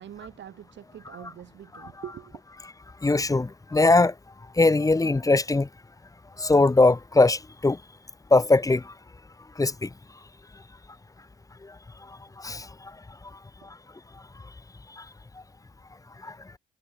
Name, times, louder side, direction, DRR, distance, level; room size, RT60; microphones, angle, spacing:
voice 1, 0.0-2.4, right 10 dB, 65° right, 3.0 m, -43 dB
voice 2, 3.0-4.1 4.6-5.7 6.4-7.8 8.3-8.8 9.6-9.9 12.4-12.6 16.2-16.3, left 3 dB, 15° left, 1.2 m, -20 dB
cardioid pair, 90°, 20 cm